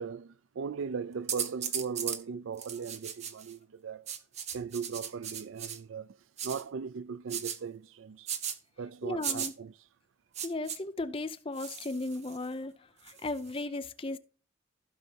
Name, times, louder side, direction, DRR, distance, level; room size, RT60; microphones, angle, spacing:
voice 1, 0.0-4.1 4.5-6.2 6.4-8.3 8.8-9.7, right 6 dB, 90° right, 0.4 m, -38 dB
sound 1, 1.3-2.2 2.6-3.5 4.1-5.8 6.4-6.6 7.3-7.6 8.3-8.6 9.2-9.5 10.3-10.8 11.6-12.5 13.1-13.6, right 8 dB, 35° right, 0.9 m, -36 dB
voice 2, 9.0-9.5 10.4-12.8 13.0-14.2, left 2 dB, 30° left, 0.6 m, -36 dB
15.5 x 5.3 x 2.9 m
head